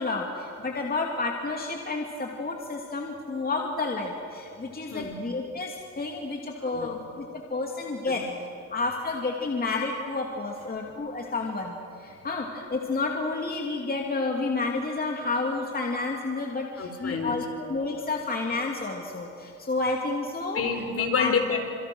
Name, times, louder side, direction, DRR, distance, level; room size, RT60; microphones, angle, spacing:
voice 1, 0.0-8.2 8.7-20.6 21.0-21.3, left 3 dB, 30° left, 1 dB, 2.7 m, -30 dB
voice 2, 6.6-7.0 8.1-8.2 16.8-17.4 20.5-21.6, left 5 dB, 50° left, 5 dB, 4.5 m, -28 dB
28.5 x 27.5 x 6.3 m, 2.6 s
cardioid pair, 90°, 30 cm